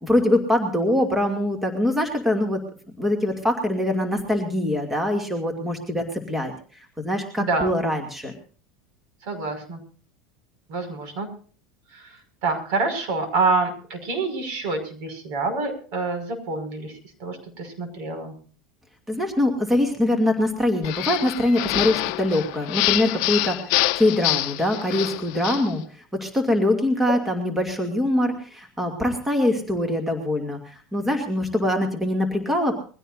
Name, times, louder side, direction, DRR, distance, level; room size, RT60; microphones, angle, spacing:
voice 1, 0.0-2.6 3.0-8.3 19.1-25.8 26.2-32.7, left 1 dB, 10° right, 3 dB, 2.5 m, -23 dB
voice 2, 7.4-7.7 9.2-9.8 10.7-11.3 11.9-12.2 12.4-16.9 17.2-18.3, right 3 dB, 65° right, 7 dB, 5.7 m, -27 dB
sound 1, 20.8-25.7, left 19 dB, 65° left, 0.7 m, -26 dB
22.5 x 16.0 x 2.6 m, 0.41 s
supercardioid pair, 135°, 3 cm